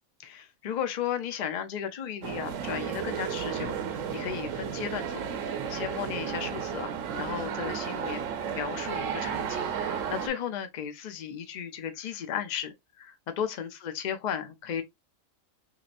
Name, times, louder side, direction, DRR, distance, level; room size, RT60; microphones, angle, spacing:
voice 1, 0.2-3.7 4.1-6.9 7.1-14.8, left 8 dB, 55° left, 0.5 m, -35 dB
sound 1, 2.2-10.3, right 7 dB, 75° right, 1.0 m, -33 dB
3.1 x 2.9 x 2.5 m
omnidirectional pair, 1.4 m